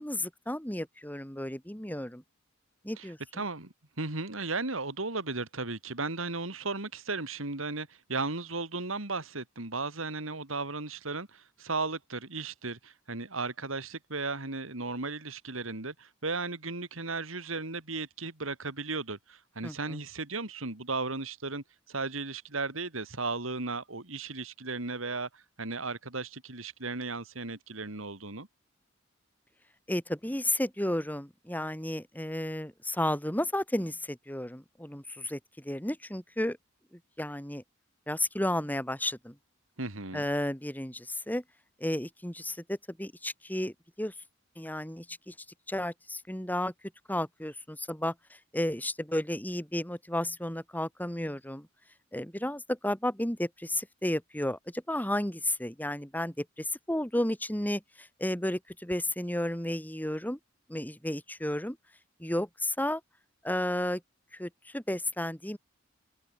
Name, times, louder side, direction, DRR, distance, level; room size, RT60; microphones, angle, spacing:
voice 1, 0.0-2.2 2.8-3.2 19.6-20.0 29.9-36.6 36.9-37.6 38.1-39.4 40.1-41.4 41.8-44.1 44.6-45.3 45.7-46.7 47.1-51.7 52.1-60.4 60.7-61.8 62.2-63.0 63.4-64.0 64.3-65.6, left 1 dB, 10° left, 3.9 m, -33 dB
voice 2, 3.0-28.5 39.8-40.3, right 3 dB, 90° right, 3.2 m, -35 dB
head